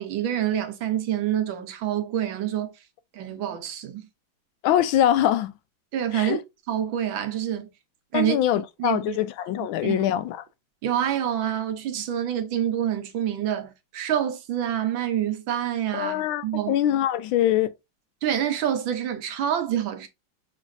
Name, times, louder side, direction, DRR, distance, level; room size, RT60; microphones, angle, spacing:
voice 1, 0.0-2.7 3.1-4.0 5.9-6.4 6.7-7.7 8.1-8.4 8.8-9.2 9.8-10.1 10.8-16.7 18.2-20.1, right 10 dB, 80° right, 1.6 m, -27 dB
voice 2, 4.6-5.5 6.1-6.4 8.1-10.4 15.9-17.7, left 11 dB, 85° left, 1.4 m, -23 dB
6.0 x 3.2 x 2.5 m
omnidirectional pair, 2.1 m